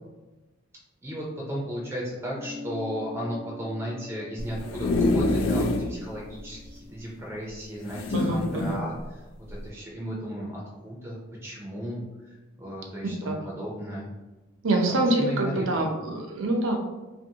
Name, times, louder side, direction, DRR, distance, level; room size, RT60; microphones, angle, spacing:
voice 1, 1.0-8.9 9.5-14.1 14.9-15.9, equal, 15° right, -4 dB, 0.5 m, -35 dB
sound 1, 2.2-7.0, left 2 dB, 55° left, 0.8 m, -43 dB
sound 2, 4.4-5.9 6.4-6.5 6.7-6.8 7.9-8.8 9.5-9.7, left 2 dB, 90° left, 0.3 m, -26 dB
voice 2, 8.1-8.8 13.3-13.5 14.6-16.8, right 1 dB, 75° right, 2 dB, 0.5 m, -25 dB
2.5 x 2.5 x 2.7 m, 1.1 s
head